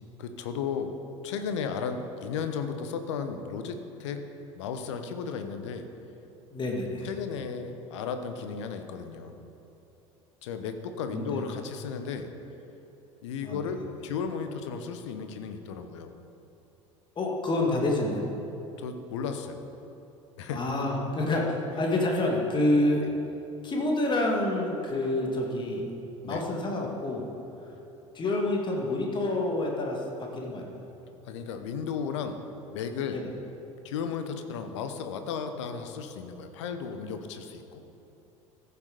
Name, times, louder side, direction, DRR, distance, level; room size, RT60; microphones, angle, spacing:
voice 1, 0.2-0.9 1.2-4.2 4.6-5.9 7.0-9.4 10.4-12.3 13.2-16.1 18.8-19.6 20.4-20.6 26.2-26.4 31.3-32.4 32.7-33.2 33.8-37.8, left 6 dB, 60° left, 7 dB, 0.9 m, -34 dB
voice 2, 6.5-7.1 11.1-11.4 13.4-13.7 17.2-18.3 20.5-23.1 23.6-25.9 26.2-27.3 28.1-30.9 33.1-33.3, left 2 dB, 30° left, 0 dB, 2.0 m, -28 dB
14.5 x 6.8 x 5.1 m, 3.0 s
figure-of-eight pair, 70°, 17 cm